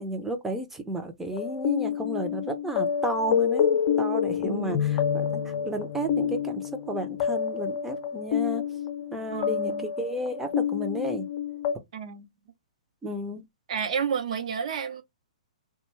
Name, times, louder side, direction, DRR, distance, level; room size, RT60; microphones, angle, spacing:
voice 1, 0.0-8.6 9.1-11.3 13.0-13.4, right 1 dB, 5° right, 0.6 m, -33 dB
sound 1, 1.3-11.7, left 8 dB, 45° left, 0.7 m, -28 dB
voice 2, 9.3-9.9 11.9-12.2 13.7-15.0, right 7 dB, 60° right, 0.8 m, -30 dB
2.4 x 2.3 x 3.0 m
hypercardioid pair, 130°, 4 cm